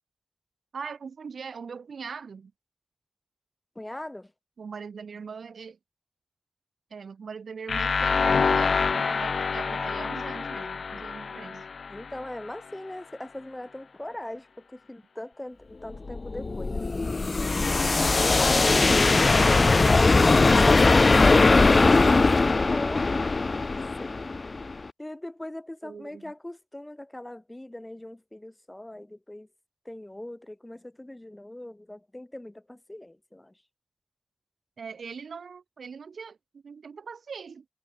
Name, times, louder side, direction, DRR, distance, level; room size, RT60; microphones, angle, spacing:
voice 1, 0.7-2.5 4.6-5.8 6.9-11.7 25.8-26.3 34.8-37.7, right 5 dB, 90° right, 2.0 m, -40 dB
voice 2, 3.7-4.3 11.9-17.5 18.4-23.1 24.0-24.2 25.0-29.5 29.8-33.5, left 1 dB, 20° left, 1.4 m, -38 dB
sound 1, 7.7-12.6, left 5 dB, 80° left, 0.3 m, -27 dB
sound 2, 15.9-24.9, left 3 dB, 50° left, 0.7 m, -20 dB
cardioid pair, 55°, 0 cm